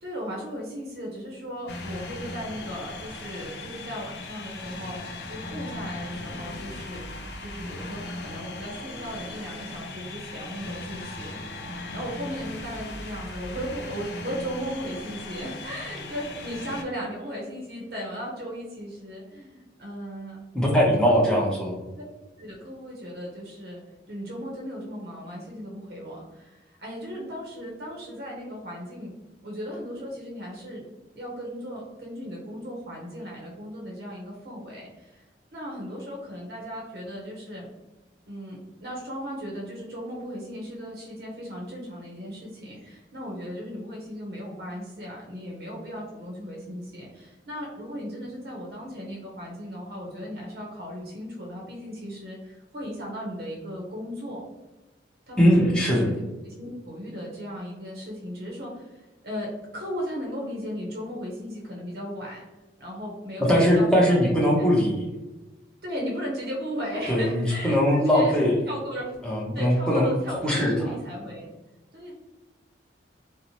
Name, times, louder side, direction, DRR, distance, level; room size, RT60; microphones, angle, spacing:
voice 1, 0.0-5.0 5.3-11.3 11.9-20.4 21.1-21.5 22.4-23.8 24.1-29.1 29.4-30.8 31.1-35.2 35.5-37.7 38.3-54.5 55.3-56.1 56.4-62.4 62.8-64.3 64.6-64.7 65.8-69.1 69.5-71.5 71.9-72.1, equal, 60° right, -2 dB, 0.6 m, -36 dB
sound 1, 1.7-16.8, left 2 dB, 65° left, 0.4 m, -38 dB
voice 2, 20.5-21.7 55.4-56.1 63.5-64.9 67.1-68.5 69.2-70.1 70.4-71.0, equal, 5° left, -4 dB, 0.6 m, -20 dB
2.7 x 2.0 x 2.8 m, 1.1 s
head